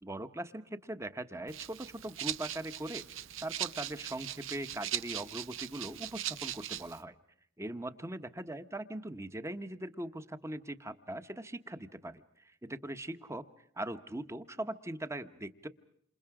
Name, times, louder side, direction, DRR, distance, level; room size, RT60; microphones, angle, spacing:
voice 1, 0.0-3.1 3.4-7.2 7.6-13.5 13.7-15.7, right 1 dB, 15° right, 11 dB, 1.0 m, -40 dB
Rattle (instrument), 1.5-7.0, right 11 dB, 65° right, 0.9 m, -40 dB
29.0 x 27.0 x 4.9 m, 0.72 s
head